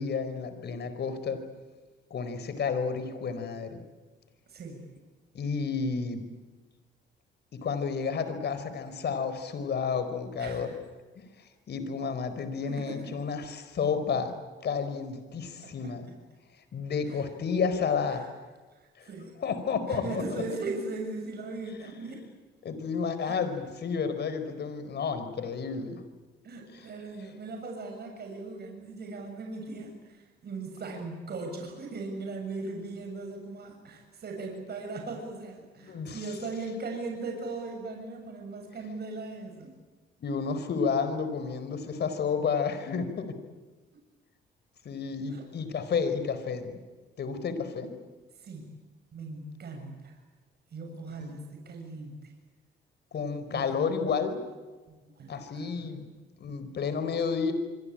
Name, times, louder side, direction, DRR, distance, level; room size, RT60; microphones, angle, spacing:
voice 1, 0.0-1.4 2.1-3.9 5.3-6.3 7.5-10.7 11.4-14.3 14.6-16.1 16.7-18.2 19.0-19.1 19.4-20.2 20.5-20.6 22.6-26.0 26.7-26.8 35.8-36.2 40.2-43.3 44.8-46.7 47.2-47.9 51.2-51.3 53.1-54.4 55.3-56.1 56.4-57.5, left 5 dB, 55° left, 10 dB, 4.6 m, -31 dB
voice 2, 4.5-4.9 10.4-10.8 12.7-13.2 15.6-16.1 17.1-17.2 18.1-18.3 18.7-19.4 19.9-22.3 23.2-23.3 26.4-39.7 43.9-44.0 45.3-45.5 48.4-48.7 49.1-50.2 50.7-52.3 53.5-53.9 54.9-56.0, right 3 dB, 55° right, 2 dB, 7.3 m, -39 dB
25.5 x 24.5 x 8.9 m, 1.3 s
cardioid pair, 90°, 20 cm